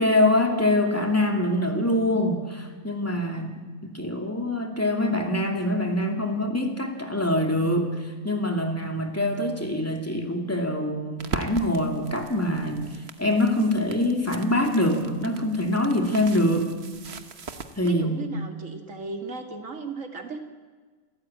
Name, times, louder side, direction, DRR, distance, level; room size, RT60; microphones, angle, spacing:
voice 1, 0.0-16.7 17.8-18.2, left 1 dB, 10° left, 3 dB, 2.5 m, -24 dB
sound 1, 11.2-17.9, right 5 dB, 55° right, 1.4 m, -40 dB
voice 2, 17.8-20.4, right 3 dB, 75° right, 5 dB, 2.5 m, -36 dB
28.5 x 13.5 x 8.9 m, 1.5 s
omnidirectional pair, 1.4 m